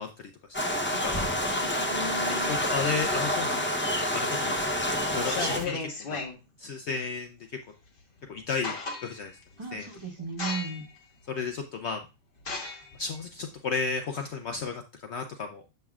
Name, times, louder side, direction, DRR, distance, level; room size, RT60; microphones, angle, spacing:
voice 1, 0.0-1.4 2.4-6.2 6.6-7.4 8.3-9.3 9.7-9.9 11.3-12.0 13.0-15.6, left 5 dB, 60° left, 5 dB, 0.8 m, -34 dB
sound 1, 0.5-5.6, left 1 dB, 15° left, 0.5 m, -28 dB
voice 2, 1.4-2.5 9.6-10.9, right 3 dB, 25° right, -1 dB, 1.1 m, -37 dB
sound 2, 5.2-6.4 8.0-8.1 8.4-9.3 9.8-10.0 10.4-11.0 11.5-11.6 12.4-14.7, left 4 dB, 40° left, 1.3 m, -35 dB
7.5 x 5.6 x 2.3 m, 0.27 s
omnidirectional pair, 1.5 m